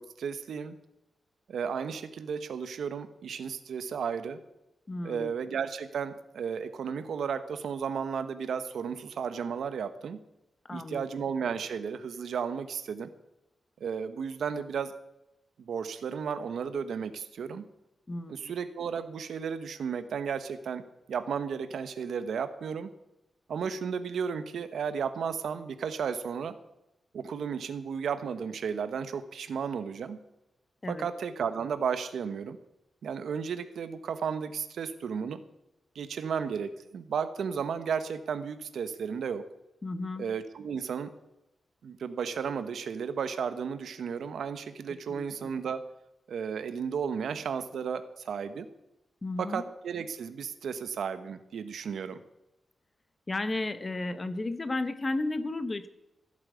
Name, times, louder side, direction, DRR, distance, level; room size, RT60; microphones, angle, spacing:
voice 1, 0.2-0.8 1.5-4.4 5.0-10.2 10.7-13.1 13.8-14.9 15.6-17.6 18.3-20.8 21.1-22.9 23.5-26.5 27.1-30.2 30.9-32.6 33.0-35.4 35.9-39.4 40.2-41.1 41.8-45.8 46.3-48.7 49.4-52.2, right 6 dB, 80° right, 11 dB, 1.1 m, -33 dB
voice 2, 4.9-5.3 10.6-11.2 18.1-18.5 30.8-31.1 39.8-40.3 45.1-45.5 49.2-49.6 53.3-55.9, left 2 dB, 25° left, 12 dB, 0.9 m, -34 dB
15.5 x 8.9 x 8.2 m, 0.90 s
wide cardioid pair, 170°, 0 cm